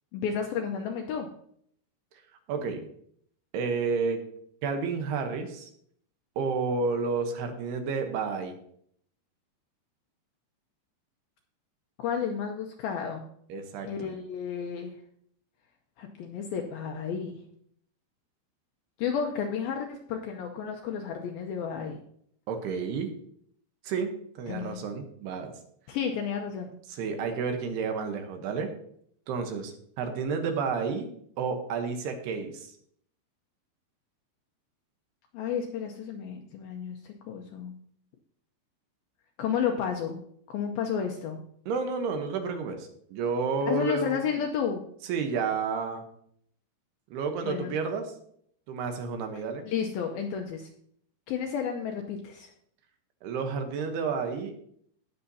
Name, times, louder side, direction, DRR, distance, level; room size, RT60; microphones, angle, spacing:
voice 1, 0.1-1.3 12.0-13.3 13.8-14.9 16.0-17.4 19.0-22.0 24.5-24.8 25.9-26.7 35.3-37.7 39.4-40.2 40.5-41.4 43.7-44.9 47.4-47.8 49.7-50.7 51.3-52.5, left 7 dB, 80° left, 3 dB, 2.2 m, -32 dB
voice 2, 2.5-2.8 3.5-4.2 4.6-5.7 6.4-8.5 13.5-13.9 22.5-23.1 23.8-25.5 26.9-28.7 29.3-31.1 31.4-32.7 41.7-44.2 45.1-46.0 47.1-48.1 48.7-49.6 53.2-54.5, right 5 dB, 75° right, 6 dB, 2.9 m, -30 dB
18.5 x 6.7 x 2.8 m, 0.65 s
omnidirectional pair, 5.0 m